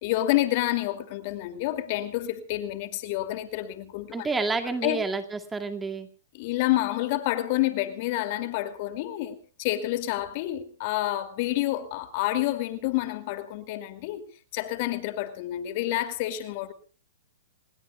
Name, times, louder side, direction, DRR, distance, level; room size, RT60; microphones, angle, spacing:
voice 1, 0.0-4.3 4.6-5.0 6.3-14.2 14.5-16.7, left 15 dB, 45° left, 2.6 m, -28 dB
voice 2, 4.1-6.1, right 4 dB, 10° right, 2.2 m, -29 dB
28.0 x 21.5 x 2.3 m
hypercardioid pair, 115°, 0 cm